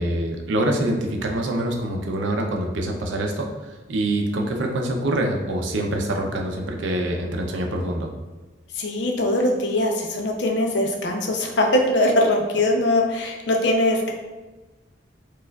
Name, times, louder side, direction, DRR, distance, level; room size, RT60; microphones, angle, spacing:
voice 1, 0.0-3.5 3.9-8.1, right 1 dB, 85° right, 2 dB, 0.5 m, -25 dB
voice 2, 8.8-14.1, left 1 dB, 70° left, 1 dB, 0.5 m, -21 dB
4.3 x 2.4 x 2.3 m, 1.2 s
head